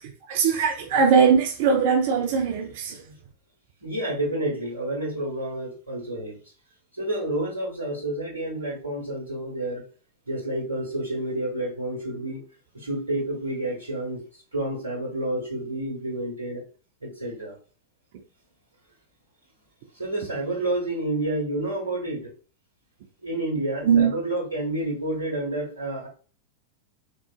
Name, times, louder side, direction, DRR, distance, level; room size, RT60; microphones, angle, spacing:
voice 1, 0.0-3.0 23.8-24.1, right 6 dB, 50° right, 0.6 m, -21 dB
voice 2, 3.8-6.3 6.9-9.8 10.3-12.4 12.7-16.6 17.0-17.6 19.9-22.3 23.2-26.1, right 1 dB, 75° right, 1.2 m, -29 dB
3.8 x 2.4 x 2.4 m
figure-of-eight pair, 90°, 0 cm